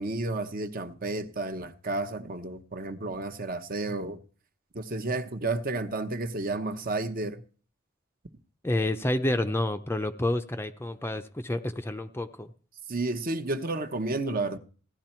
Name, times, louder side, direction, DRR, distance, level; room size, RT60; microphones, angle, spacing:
voice 1, 0.0-4.2 4.7-7.4 12.9-14.6, right 2 dB, 40° right, 0.9 m, -31 dB
voice 2, 8.6-12.5, left 1 dB, 10° left, 0.5 m, -29 dB
16.5 x 11.5 x 4.4 m
head